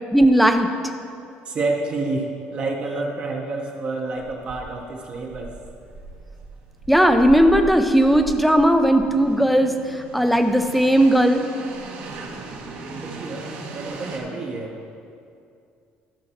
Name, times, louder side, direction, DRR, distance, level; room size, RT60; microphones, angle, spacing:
voice 1, 0.1-0.7 6.9-11.5, equal, ahead, 6 dB, 0.5 m, -17 dB
voice 2, 1.4-5.5 13.0-14.8, right 3 dB, 35° right, 0 dB, 0.9 m, -29 dB
sound 1, 4.2-14.2, right 3 dB, 65° right, 1.3 m, -38 dB
13.0 x 4.4 x 5.7 m, 2.4 s
cardioid pair, 155°, 3 cm